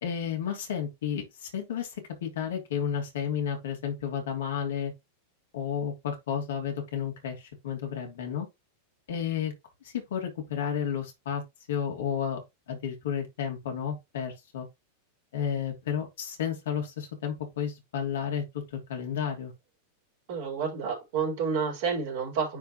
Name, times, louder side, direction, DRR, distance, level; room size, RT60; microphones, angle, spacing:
voice 1, 0.0-4.9 5.5-8.5 9.1-9.5 9.9-11.4 11.7-14.7 15.3-19.5, left 8 dB, 60° left, 2.9 m, -32 dB
voice 2, 20.3-22.6, right 5 dB, 50° right, 4.4 m, -29 dB
9.9 x 4.7 x 3.0 m
figure-of-eight pair, 90°, 0 cm